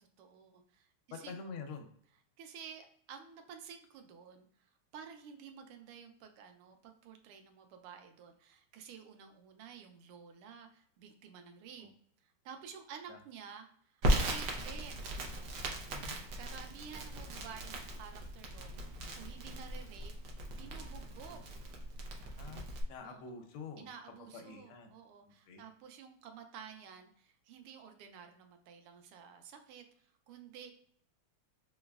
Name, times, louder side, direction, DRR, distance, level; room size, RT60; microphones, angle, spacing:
voice 1, 0.0-1.3 2.4-11.9 12.2-15.1 16.4-20.1 20.5-21.6 23.0-23.4 23.8-30.7, right 7 dB, 85° right, 6 dB, 1.5 m, -52 dB
voice 2, 1.1-1.9 11.8-11.9 13.1-13.2 15.9-16.2 22.4-24.9 25.2-25.6, left 5 dB, 80° left, 5 dB, 1.5 m, -47 dB
Crackle, 14.0-22.8, right 1 dB, 65° right, 1.1 m, -37 dB
3.9 x 3.0 x 2.3 m, 0.62 s
omnidirectional pair, 2.4 m